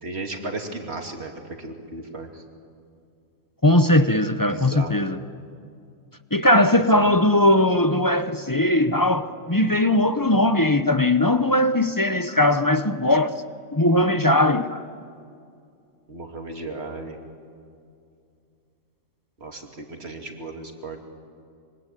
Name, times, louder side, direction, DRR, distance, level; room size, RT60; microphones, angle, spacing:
voice 1, 0.0-2.4 4.5-5.0 6.8-7.2 16.1-17.2 19.4-21.0, right 2 dB, 50° right, 3.1 m, -35 dB
voice 2, 3.6-5.2 6.3-13.3 13.7-14.8, left 1 dB, 20° left, 0.7 m, -19 dB
25.0 x 24.5 x 9.2 m
omnidirectional pair, 1.4 m